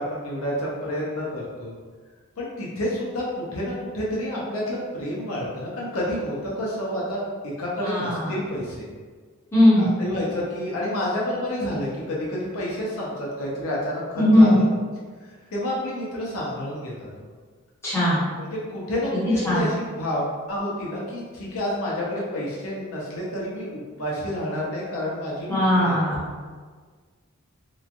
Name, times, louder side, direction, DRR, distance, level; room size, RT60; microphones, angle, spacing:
voice 1, 0.0-1.7 2.4-8.9 9.8-14.7 15.3-17.1 18.4-26.0, left 1 dB, 70° left, -5 dB, 0.6 m, -29 dB
voice 2, 7.8-8.3 9.5-9.9 14.2-14.6 17.8-18.3 19.4-19.7 25.5-26.4, left 1 dB, 10° left, -11 dB, 0.9 m, -19 dB
3.1 x 2.2 x 2.5 m, 1.5 s
head